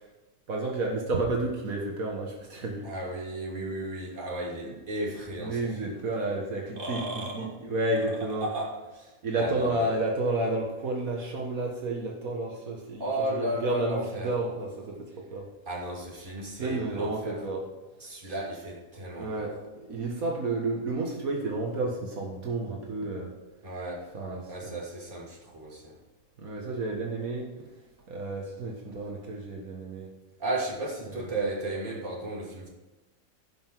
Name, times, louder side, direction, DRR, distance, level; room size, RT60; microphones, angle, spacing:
voice 1, 0.5-2.9 3.6-3.7 4.7-4.8 5.4-8.5 9.2-13.0 13.3-15.5 16.6-17.6 18.3-18.4 19.2-23.3 24.1-24.8 26.4-27.7 28.1-30.1, right 2 dB, 80° right, -1 dB, 1.9 m, -31 dB
voice 2, 2.8-6.0 6.8-7.6 8.4-9.9 13.0-14.3 15.7-17.4 18.0-19.6 23.6-24.1 24.5-26.0 30.4-32.7, right 1 dB, 35° right, -4 dB, 2.9 m, -34 dB
16.5 x 5.8 x 4.6 m, 1.2 s
omnidirectional pair, 1.4 m